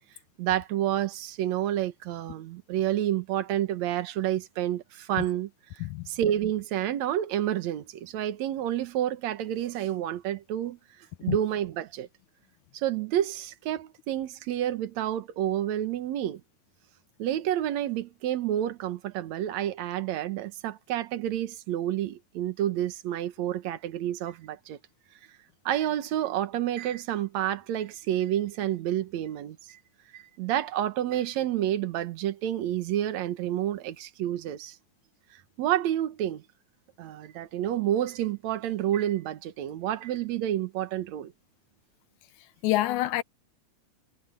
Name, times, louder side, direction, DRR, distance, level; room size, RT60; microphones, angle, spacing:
voice 1, 0.4-10.8 11.2-12.1 12.7-16.4 17.2-24.8 25.7-29.6 30.1-34.8 35.6-36.4 37.0-41.3, right 12 dB, 70° right, 2.4 m, -29 dB
voice 2, 42.6-43.2, left 15 dB, 85° left, 2.1 m, -26 dB
omnidirectional pair, 3.4 m